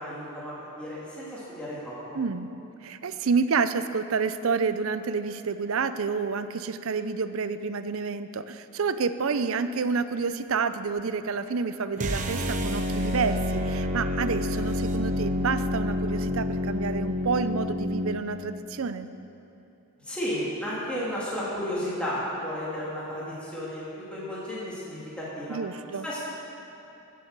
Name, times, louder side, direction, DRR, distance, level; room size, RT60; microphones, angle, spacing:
voice 1, 0.0-1.9 20.0-23.9 24.1-25.6 26.0-26.2, equal, 5° left, -9 dB, 2.5 m, -33 dB
voice 2, 2.1-2.5 2.8-19.1 25.5-26.1, right 5 dB, 65° right, 12 dB, 0.5 m, -29 dB
sound 1, 12.0-18.2, left 1 dB, 35° right, 0.8 m, -28 dB
15.0 x 7.7 x 6.7 m, 2.8 s
head